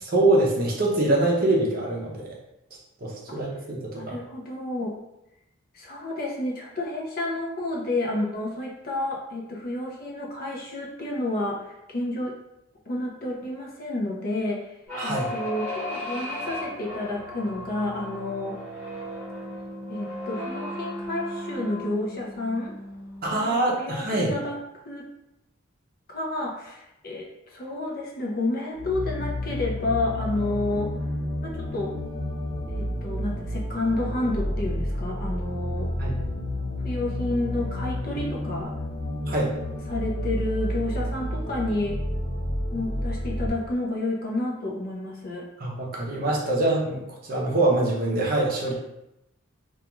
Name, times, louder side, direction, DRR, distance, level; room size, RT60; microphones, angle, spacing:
voice 1, 0.1-2.3 3.0-4.2 15.0-15.3 23.2-24.3 36.0-36.2 39.3-39.5 45.6-48.7, right 2 dB, 45° right, -3 dB, 0.6 m, -24 dB
voice 2, 3.9-5.0 5.7-12.4 12.9-14.7 15.0-18.6 19.9-22.7 23.3-24.6 24.9-25.1 26.1-30.9 31.4-32.0 32.7-35.9 36.8-38.7 39.9-42.0 42.7-45.5, left 2 dB, 45° left, -2 dB, 0.5 m, -30 dB
sound 1, 14.9-23.6, left 1 dB, 5° left, 1.0 m, -36 dB
sound 2, 28.7-43.5, left 1 dB, 90° left, 0.9 m, -30 dB
2.3 x 2.3 x 2.9 m, 0.85 s
head